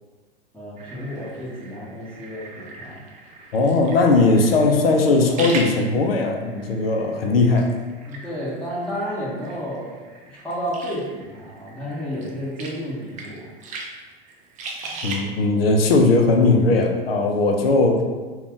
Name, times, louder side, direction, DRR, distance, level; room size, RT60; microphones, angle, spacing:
voice 1, 0.5-3.0 8.1-10.0 10.2-13.5, equal, 5° left, -9 dB, 0.9 m, -31 dB
sound 1, 0.8-15.2, right 3 dB, 25° right, 0.4 m, -39 dB
voice 2, 3.5-7.7 15.0-18.0, left 3 dB, 85° left, 3 dB, 0.5 m, -18 dB
2.5 x 2.3 x 3.5 m, 1.4 s
hypercardioid pair, 95°, 29 cm